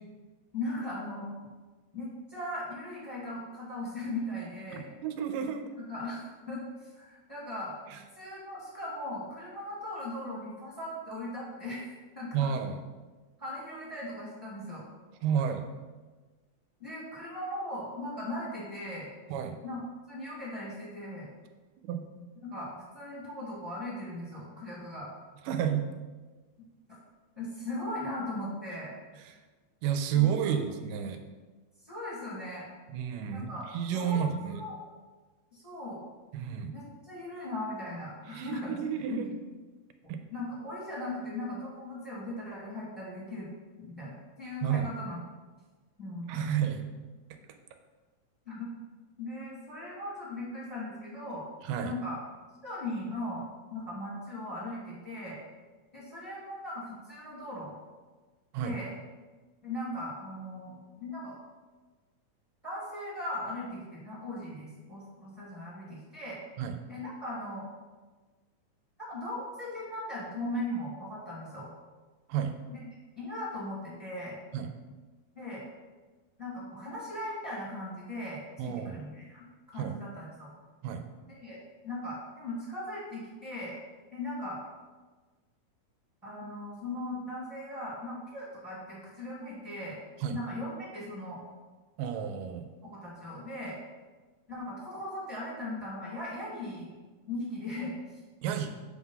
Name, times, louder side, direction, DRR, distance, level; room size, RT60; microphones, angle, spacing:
voice 1, 0.5-1.3 1.9-4.9 5.8-7.8 8.1-12.5 13.4-14.8 15.4-15.5 16.8-19.1 19.6-21.3 22.4-25.1 27.3-28.9 30.1-30.5 31.8-32.7 33.3-33.7 33.9-34.7 35.5-36.0 36.7-38.7 39.1-39.3 40.3-43.5 43.8-44.1 44.4-45.2 46.0-46.4 48.4-48.7 49.2-51.5 51.8-52.2 52.6-53.4 53.7-55.4 55.9-57.8 58.6-58.9 59.6-61.4 62.6-66.4 66.9-67.6 69.1-71.7 72.7-72.9 73.2-74.3 75.3-75.6 76.4-80.5 81.3-81.6 81.8-83.8 84.1-84.6 86.2-90.0 90.3-91.4 92.8-93.7 94.5-96.9 97.3-98.2, left 1 dB, 10° right, -7 dB, 1.4 m, -38 dB
voice 2, 4.7-5.6 7.9-8.0 12.3-12.8 15.2-15.7 19.3-19.6 21.8-22.0 25.5-25.9 29.8-31.2 32.9-34.6 36.3-36.7 38.3-39.3 40.1-40.2 44.6-44.9 46.3-46.9 51.6-51.9 58.5-58.8 66.6-66.7 72.3-72.6 74.5-74.7 78.6-79.0 79.8-80.0 80.8-81.0 90.2-90.4 92.0-92.7 98.4-98.7, right 8 dB, 90° right, 7 dB, 2.3 m, -31 dB
7.6 x 3.6 x 5.6 m, 1.3 s
omnidirectional pair, 3.7 m